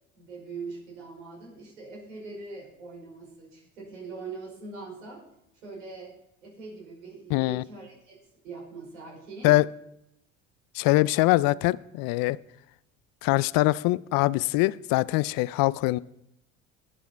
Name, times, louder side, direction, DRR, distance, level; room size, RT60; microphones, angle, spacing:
voice 1, 0.2-5.2 5.6-6.1 6.4-8.1 8.4-9.6, right 4 dB, 90° right, -3 dB, 5.3 m, -42 dB
voice 2, 7.3-7.6 9.4-9.6 10.7-12.4 13.2-16.0, left 19 dB, 60° left, 19 dB, 0.5 m, -23 dB
21.0 x 7.1 x 4.4 m, 0.81 s
hypercardioid pair, 65°, 38 cm